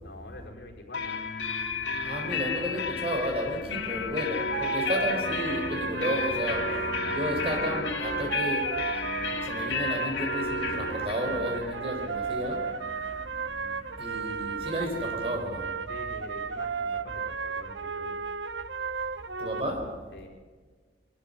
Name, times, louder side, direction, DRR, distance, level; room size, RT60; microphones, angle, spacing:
voice 1, 0.0-1.2 7.0-7.6 13.6-13.8 15.9-18.2 20.1-20.3, left 2 dB, 60° left, 0 dB, 4.6 m, -46 dB
sound 1, 0.9-14.5, left 5 dB, 80° left, 2.1 m, -33 dB
voice 2, 2.0-8.9 9.2-12.8 14.0-15.7 19.4-20.1, equal, 30° right, 3 dB, 4.3 m, -32 dB
sound 2, 4.5-19.6, right 5 dB, 70° right, 0.7 m, -34 dB
23.5 x 13.0 x 9.8 m, 1.4 s
head